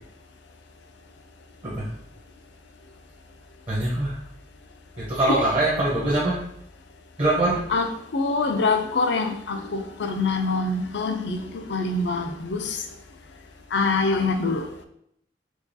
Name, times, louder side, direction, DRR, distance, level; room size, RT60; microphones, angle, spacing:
voice 1, 3.7-4.1 5.1-6.4 7.2-7.6, right 2 dB, 30° right, -6 dB, 0.8 m, -23 dB
voice 2, 7.7-11.4 11.7-12.8 13.7-14.8, left 3 dB, 80° left, 5 dB, 0.5 m, -25 dB
4.6 x 2.3 x 2.7 m, 0.71 s
head